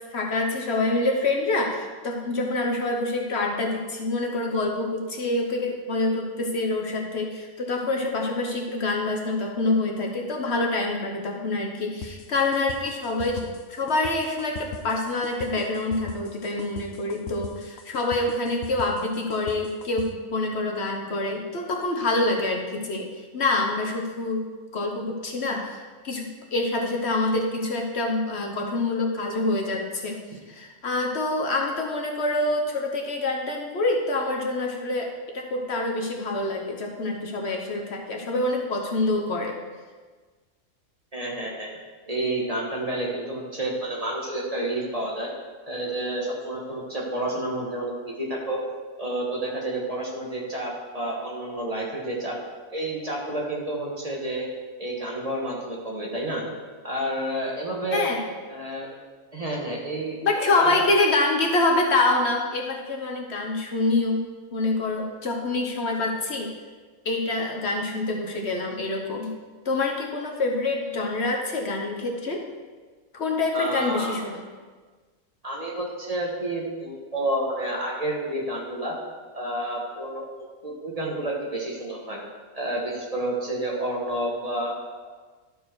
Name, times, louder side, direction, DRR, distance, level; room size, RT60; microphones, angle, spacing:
voice 1, 0.1-30.2 30.5-39.5 57.9-58.3 60.2-64.2 64.5-66.5 67.0-69.3 69.6-72.4 73.1-74.4, left 2 dB, 55° left, 1 dB, 1.1 m, -26 dB
sound 1, 12.0-20.1, left 7 dB, 85° left, 1.1 m, -39 dB
voice 2, 41.1-41.7 42.1-45.3 45.7-48.6 49.0-52.4 52.7-54.5 54.8-56.4 56.8-58.1 58.5-58.9 59.3-60.8 73.5-74.2 75.4-79.0 79.3-80.2 80.6-82.2 82.5-84.8, right 1 dB, 30° right, -3 dB, 1.5 m, -30 dB
12.5 x 4.6 x 4.7 m, 1.4 s
omnidirectional pair, 1.4 m